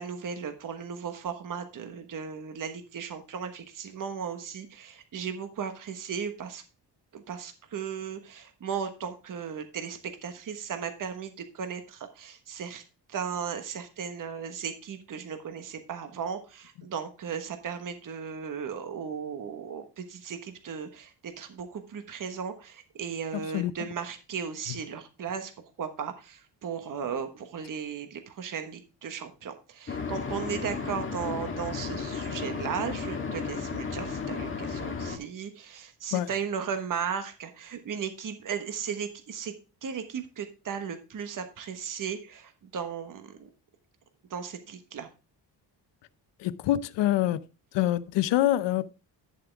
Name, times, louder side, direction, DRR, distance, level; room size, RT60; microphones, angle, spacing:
voice 1, 0.0-6.6 7.1-12.8 13.1-25.5 25.8-39.5 39.8-43.5 44.3-45.1, right 7 dB, 50° right, 1.4 m, -36 dB
voice 2, 23.3-23.7 36.1-36.3 46.4-47.4 47.7-48.9, left 14 dB, 90° left, 0.7 m, -26 dB
sound 1, 29.9-35.2, left 5 dB, 30° left, 1.7 m, -34 dB
10.5 x 7.3 x 3.4 m
cardioid pair, 110°, 41 cm